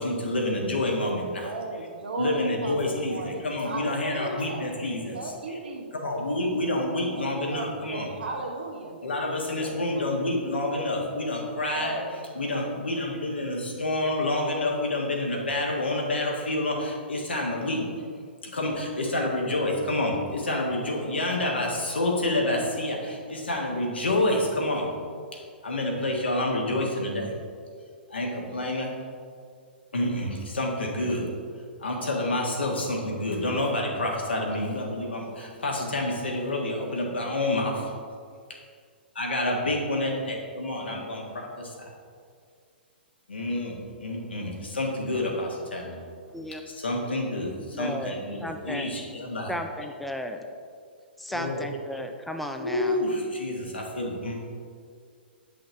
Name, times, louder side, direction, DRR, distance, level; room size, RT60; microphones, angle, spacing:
voice 1, 0.0-1.5 2.2-5.6 6.0-8.1 9.0-12.0 12.3-17.9 18.4-24.9 25.3-27.4 28.1-29.0 29.9-31.3 31.8-37.9 39.1-41.9 43.3-46.0 46.7-49.5 51.3-51.6 52.6-54.4, left 1 dB, 80° left, -1 dB, 1.5 m, -28 dB
voice 2, 1.4-4.7 5.1-6.0 7.1-7.2 7.5-9.0 9.6-10.3 11.7-12.1, right 2 dB, 70° right, 2 dB, 1.1 m, -36 dB
voice 3, 47.7-48.1 48.4-48.9 49.5-50.4 51.2-53.0, left 1 dB, ahead, 4 dB, 0.5 m, -34 dB
8.7 x 5.7 x 3.3 m, 2.1 s
figure-of-eight pair, 115°, 6 cm